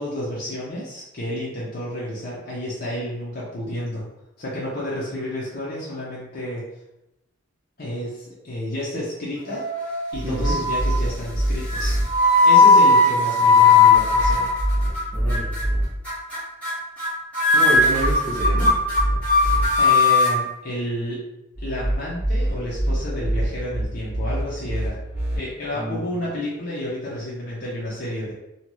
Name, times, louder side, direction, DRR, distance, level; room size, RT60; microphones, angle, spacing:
voice 1, 0.0-4.0 4.4-6.6 7.8-9.6 10.1-12.0 12.4-14.5 19.8-21.2 21.6-25.0 25.3-28.3, left 1 dB, 45° left, -7 dB, 0.6 m, -30 dB
sound 1, 9.5-10.1 10.4-10.9 11.7-15.0 15.3-15.6 16.0-16.4 16.6-16.7 17.0-17.1 17.3-20.3, left 3 dB, 5° left, 1.1 m, -17 dB
sound 2, 10.1-12.0 13.9-15.9 17.7-19.7 21.6-25.4, right 1 dB, 30° left, 1.3 m, -25 dB
voice 2, 10.2-10.6 15.1-15.5 17.5-18.7 25.7-26.1, right 1 dB, 40° right, -8 dB, 0.6 m, -28 dB
2.8 x 2.3 x 2.9 m, 0.89 s
head